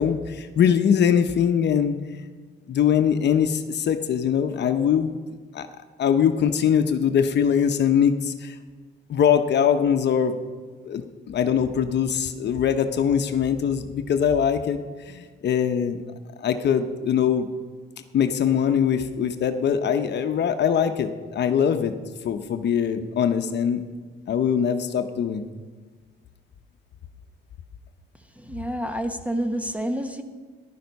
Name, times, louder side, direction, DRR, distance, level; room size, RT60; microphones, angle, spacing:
voice 1, 0.0-2.0 2.7-5.1 5.5-5.7 6.0-8.6 9.1-10.4 10.8-16.0 16.4-17.5 18.1-21.9 22.2-23.8 24.3-25.4, left 8 dB, 60° left, 8 dB, 0.9 m, -22 dB
voice 2, 28.4-30.2, right 1 dB, 5° right, 7 dB, 1.1 m, -28 dB
14.0 x 11.5 x 5.4 m, 1.5 s
cardioid pair, 90°, 20 cm